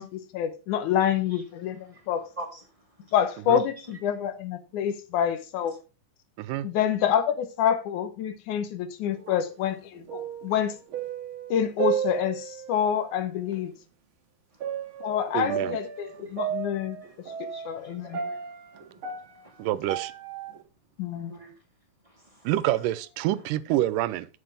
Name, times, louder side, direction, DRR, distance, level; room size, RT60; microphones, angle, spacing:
voice 1, 0.0-2.3 3.1-5.7 6.6-10.7 11.5-13.7 15.0-17.0 17.4-18.2 21.0-21.3, left 9 dB, 75° left, 2.3 m, -27 dB
voice 2, 1.0-1.4 1.7-3.1 3.8-4.0 14.5-15.1 15.7-16.6 17.0-19.0 19.3-20.0 21.3-21.6 22.0-22.5 23.3-23.5, right 1 dB, 15° right, 1.2 m, -48 dB
voice 3, 6.4-6.7 9.3-9.4 15.3-15.8 19.6-20.1 22.5-24.3, right 14 dB, 85° right, 2.2 m, -27 dB
sound 1, 9.1-9.7 9.9-12.8 13.5-13.6 14.6-20.6, right 8 dB, 60° right, 1.5 m, -33 dB
7.9 x 7.8 x 3.8 m
omnidirectional pair, 3.7 m